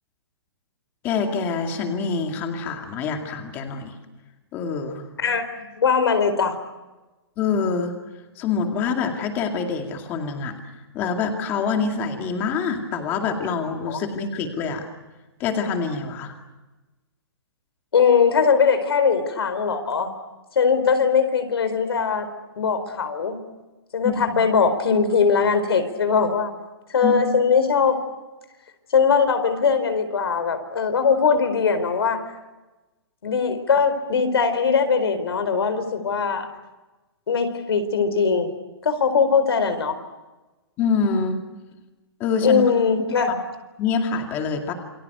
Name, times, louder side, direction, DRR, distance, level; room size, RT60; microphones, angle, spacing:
voice 1, 1.0-3.9 4.5-5.1 7.4-7.9 8.4-10.5 10.9-14.9 15.4-16.3 24.0-24.4 27.0-27.2 40.8-41.4 42.2-42.7 43.8-44.7, left 5 dB, 15° left, 4 dB, 2.2 m, -25 dB
voice 2, 5.2-6.6 13.9-14.0 17.9-20.1 20.6-22.3 22.6-23.4 23.9-26.5 26.9-28.0 28.9-32.2 33.2-36.5 37.3-38.5 38.8-39.9 42.4-43.3, left 5 dB, 70° left, 9 dB, 4.4 m, -20 dB
28.5 x 25.5 x 6.8 m, 1.1 s
hypercardioid pair, 180°, 14 cm